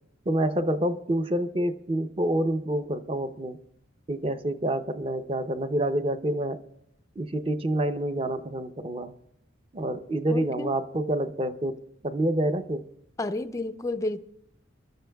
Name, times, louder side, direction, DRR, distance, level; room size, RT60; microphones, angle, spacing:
voice 1, 0.3-3.6 4.1-6.6 7.2-9.1 9.7-12.9, right 1 dB, 25° right, 0.6 m, -27 dB
voice 2, 10.3-10.7 13.2-14.2, left 2 dB, 15° left, 0.4 m, -31 dB
26.5 x 12.5 x 2.3 m
head